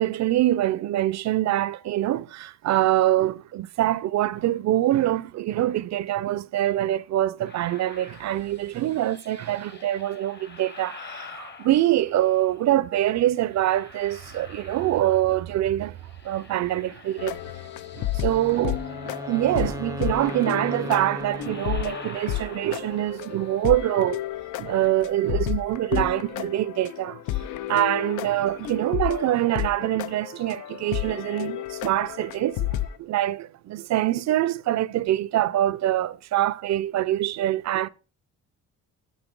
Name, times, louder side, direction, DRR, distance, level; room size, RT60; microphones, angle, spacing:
voice 1, 0.0-16.0 16.2-17.5 18.0-24.2 24.6-27.2 27.7-37.9, right 14 dB, 65° right, 0.5 m, -24 dB
sound 1, 7.5-12.8 13.3-15.5 15.8-24.9, left 4 dB, 35° left, 1.2 m, -47 dB
sound 2, 17.2-33.0, left 13 dB, 80° left, 0.6 m, -32 dB
Wind instrument woodwind instrument, 18.2-22.4, right 1 dB, 10° right, 0.5 m, -37 dB
6.5 x 6.2 x 5.2 m
cardioid pair, 90°, 30 cm